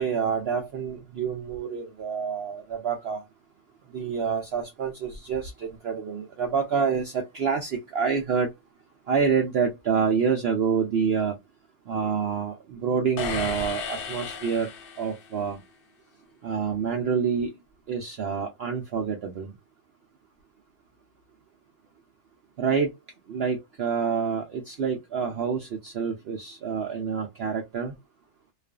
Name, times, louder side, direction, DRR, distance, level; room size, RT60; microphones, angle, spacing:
voice 1, 0.0-3.2 3.9-8.5 9.1-11.4 11.9-14.7 15.0-15.6 16.4-17.5 17.9-19.5 22.6-22.9 23.3-27.9, right 6 dB, 65° right, 0.6 m, -27 dB
sound 1, 13.2-15.4, left 5 dB, 60° left, 0.6 m, -34 dB
2.4 x 2.4 x 2.3 m
omnidirectional pair, 1.6 m